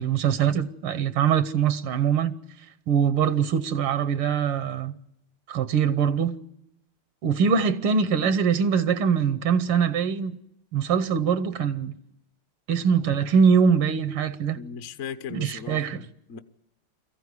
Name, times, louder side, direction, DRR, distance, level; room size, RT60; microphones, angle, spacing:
voice 1, 0.0-2.3 2.9-4.9 5.5-6.4 7.2-10.4 10.7-12.0 12.7-14.6 15.3-16.1, right 7 dB, 80° right, 1.8 m, -23 dB
voice 2, 14.6-16.4, left 7 dB, 50° left, 0.9 m, -38 dB
23.0 x 15.0 x 9.7 m
omnidirectional pair, 2.3 m